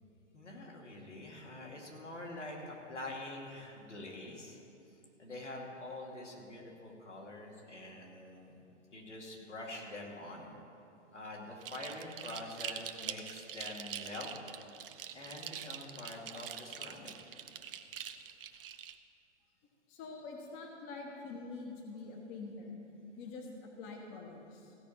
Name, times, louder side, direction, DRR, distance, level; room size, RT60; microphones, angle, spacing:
voice 1, 0.3-4.6 5.2-8.6 8.9-10.5 11.1-14.3 15.1-17.1, left 2 dB, 80° left, -2 dB, 2.5 m, -45 dB
sound 1, 11.6-19.0, right 9 dB, 50° right, 0.7 m, -44 dB
voice 2, 19.9-22.8 23.2-24.7, left 3 dB, 25° left, 1 dB, 1.2 m, -45 dB
16.0 x 5.4 x 7.4 m, 2.8 s
figure-of-eight pair, 115°, 36 cm